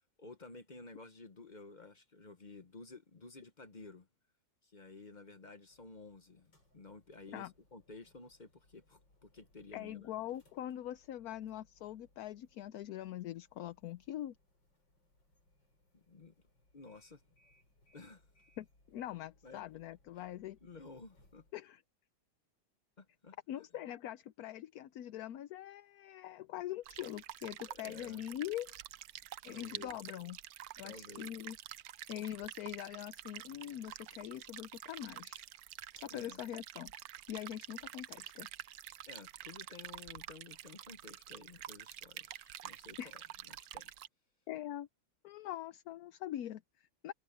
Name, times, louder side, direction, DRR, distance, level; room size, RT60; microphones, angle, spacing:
voice 1, 0.2-4.1 4.6-10.1 15.9-16.3 16.7-17.2 17.9-18.3 19.4-19.6 20.2-20.3 20.6-21.4 23.0-23.6 27.7-28.2 29.5-30.0 30.8-31.3 36.1-36.4 39.1-43.9, left 3 dB, 35° left, 0.8 m, -53 dB
sound 1, 5.6-21.5, left 1 dB, 85° left, 7.8 m, -71 dB
voice 2, 9.7-14.4 18.6-20.6 21.5-21.8 23.5-28.7 29.4-30.4 30.8-31.6 32.1-35.4 35.9-36.9 37.3-38.5 43.0-43.1 44.5-44.9 45.2-47.1, left 12 dB, 65° left, 1.0 m, -43 dB
sound 2, 26.9-44.1, right 12 dB, 65° right, 1.0 m, -49 dB
omnidirectional pair, 1.9 m